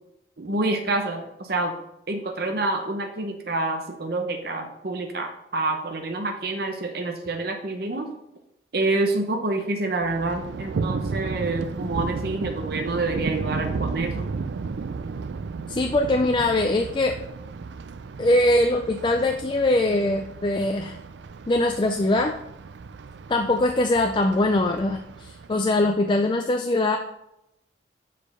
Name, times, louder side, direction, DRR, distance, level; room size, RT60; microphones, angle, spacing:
voice 1, 0.4-1.7 2.1-8.1 8.7-14.3, right 2 dB, 55° right, 4 dB, 0.8 m, -27 dB
Thunder, 10.0-26.0, right 4 dB, 70° right, 0.4 m, -34 dB
voice 2, 15.7-17.2 18.2-21.0 21.5-22.3 23.3-27.0, left 2 dB, 25° left, 4 dB, 0.4 m, -22 dB
6.4 x 5.0 x 5.3 m, 0.83 s
head